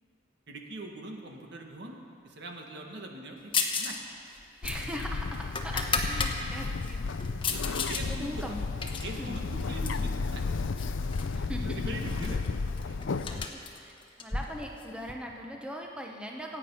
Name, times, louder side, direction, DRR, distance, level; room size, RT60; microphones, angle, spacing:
voice 1, 0.5-4.0 7.9-8.4 9.0-10.5 10.8-10.9 11.3-13.1 13.4-13.5, right 1 dB, 60° right, 1 dB, 1.8 m, -42 dB
sound 1, 3.5-4.0 4.3-6.3 6.8-8.0 8.4-10.1 10.8-11.4 11.6-11.7 12.0-15.1, left 5 dB, 25° left, 1.1 m, -34 dB
Bird, 4.6-13.4, left 4 dB, 80° left, 0.5 m, -33 dB
voice 2, 4.6-7.0 8.1-8.6 9.1-9.4 11.2-11.9 13.2-16.6, equal, 5° right, 0 dB, 1.0 m, -40 dB
26.0 x 8.8 x 5.7 m, 2.5 s
head